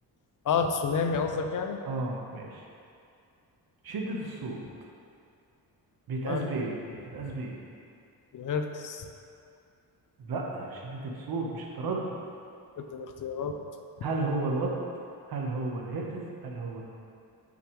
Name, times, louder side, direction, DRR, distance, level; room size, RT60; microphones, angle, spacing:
voice 1, 0.4-1.8 6.2-6.5 8.3-9.1 12.8-13.6, left 5 dB, 55° left, 5 dB, 0.6 m, -30 dB
voice 2, 1.8-2.6 3.8-4.6 6.1-6.8 7.0-7.6 10.2-12.2 14.0-14.7 15.3-16.8, right 3 dB, 65° right, -1 dB, 1.3 m, -33 dB
7.7 x 6.8 x 3.2 m, 2.4 s
cardioid pair, 125°, 39 cm